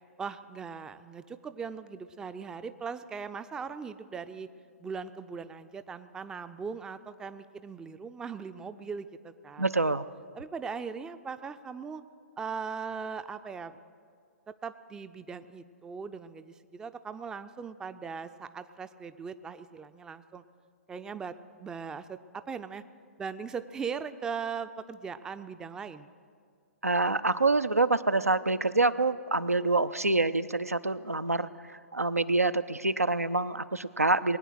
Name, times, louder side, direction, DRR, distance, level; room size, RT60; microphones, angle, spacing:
voice 1, 0.2-4.5 4.8-9.7 10.3-12.0 12.4-13.8 14.5-20.4 20.9-22.8 23.2-26.1, right 5 dB, 10° right, 12 dB, 0.4 m, -39 dB
voice 2, 9.6-10.0 26.8-31.5 31.9-34.4, right 3 dB, 90° right, 13 dB, 0.5 m, -26 dB
21.0 x 9.4 x 6.4 m, 2.2 s
figure-of-eight pair, 120°, 8 cm